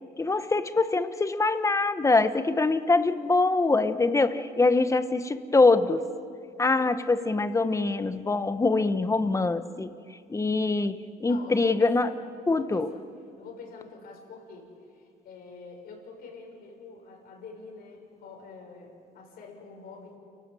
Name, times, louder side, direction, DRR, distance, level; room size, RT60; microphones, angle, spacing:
voice 1, 0.2-6.0 6.6-9.9 10.3-12.1 12.5-12.9, left 3 dB, 20° left, 11 dB, 1.1 m, -24 dB
voice 2, 11.3-12.1 12.4-13.0 13.4-20.2, left 4 dB, 65° left, 1 dB, 6.6 m, -46 dB
29.5 x 17.5 x 7.7 m, 2.3 s
cardioid pair, 110°, 17 cm